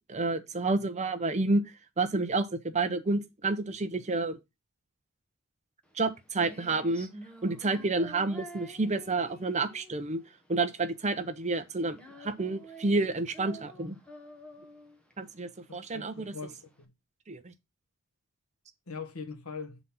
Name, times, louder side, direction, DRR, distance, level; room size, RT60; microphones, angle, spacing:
voice 1, 0.1-1.6 2.0-4.4 5.9-7.1 7.4-10.2 10.5-14.0 15.2-16.3 17.3-17.5, right 3 dB, 30° right, 0.8 m, -29 dB
Female singing, 5.9-16.8, right 1 dB, 5° left, 1.2 m, -49 dB
voice 2, 15.7-16.9 18.9-19.8, left 5 dB, 80° left, 1.4 m, -42 dB
7.4 x 4.1 x 5.5 m
head